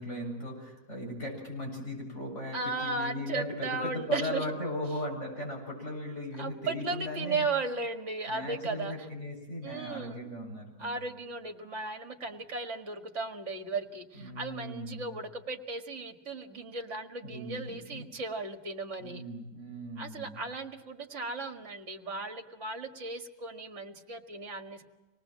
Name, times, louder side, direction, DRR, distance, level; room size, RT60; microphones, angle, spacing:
voice 1, 0.0-7.5 8.3-11.0 14.2-15.1 17.2-18.1 19.0-20.4, left 1 dB, 45° left, -1 dB, 7.9 m, -38 dB
voice 2, 2.5-4.5 6.4-9.1 9.6-10.3 10.8-19.2 20.0-24.8, right 3 dB, 45° right, 4 dB, 2.3 m, -36 dB
26.0 x 19.5 x 7.5 m, 1.2 s
omnidirectional pair, 1.7 m